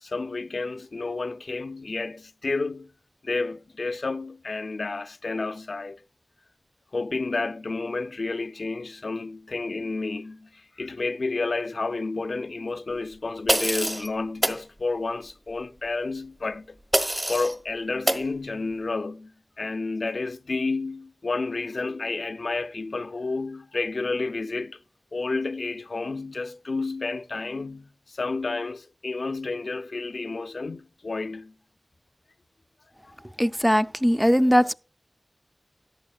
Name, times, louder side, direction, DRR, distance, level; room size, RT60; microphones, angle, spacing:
voice 1, 0.0-2.9 3.2-6.0 6.9-16.8 17.3-19.3 19.6-24.8 25.1-31.5, left 3 dB, 75° left, 0.4 m, -30 dB
sound 1, 13.5-14.1 14.4-14.6 16.9-17.5 18.1-18.3, right 1 dB, 20° right, 1.1 m, -24 dB
voice 2, 33.4-34.7, equal, ahead, 0.4 m, -20 dB
14.0 x 11.0 x 2.3 m
wide cardioid pair, 55°, 0 cm